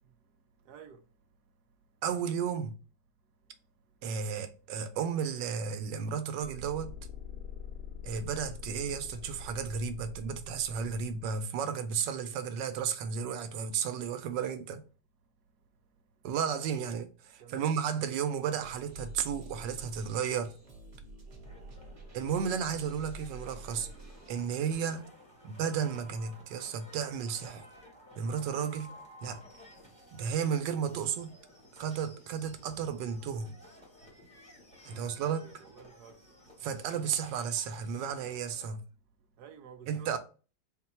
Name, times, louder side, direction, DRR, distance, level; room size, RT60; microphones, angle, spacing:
voice 1, 0.7-1.0 17.4-17.8 23.7-23.9 34.9-36.2 39.4-40.2, right 7 dB, 75° right, 1.1 m, -52 dB
voice 2, 2.0-2.8 4.0-7.0 8.0-14.8 16.2-20.5 22.1-23.9 24.3-25.1 25.4-27.6 28.2-28.9 29.2-29.4 30.1-31.3 31.7-33.6 34.8-35.6 36.6-38.8 39.9-40.2, right 7 dB, 90° right, 1.3 m, -33 dB
sound 1, 6.4-11.3, left 3 dB, 65° left, 1.2 m, -45 dB
sound 2, 18.6-24.3, right 1 dB, 40° right, 1.4 m, -48 dB
sound 3, 21.4-38.7, equal, 5° left, 0.8 m, -55 dB
4.2 x 2.2 x 4.2 m
omnidirectional pair, 1.9 m